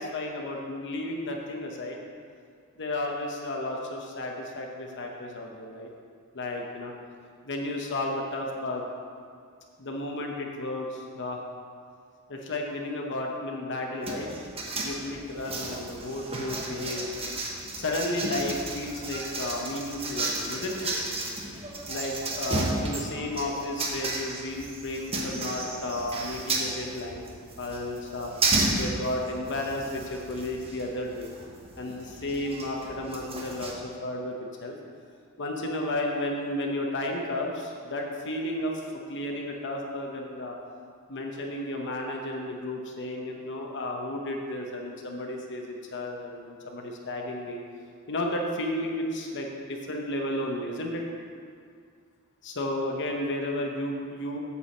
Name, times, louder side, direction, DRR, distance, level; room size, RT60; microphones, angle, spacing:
voice 1, 0.0-2.0 2.8-5.9 6.3-6.9 7.4-8.8 9.8-11.4 12.3-14.3 14.8-17.3 17.7-20.9 21.9-27.2 27.6-28.3 28.8-31.3 31.8-34.8 35.4-38.8 39.1-40.5 41.1-47.6 48.1-51.1 52.4-54.4, left 1 dB, 55° left, 1 dB, 0.9 m, -33 dB
sound 1, 14.0-33.7, right 2 dB, 25° right, 1.1 m, -33 dB
8.3 x 4.8 x 7.1 m, 2.2 s
head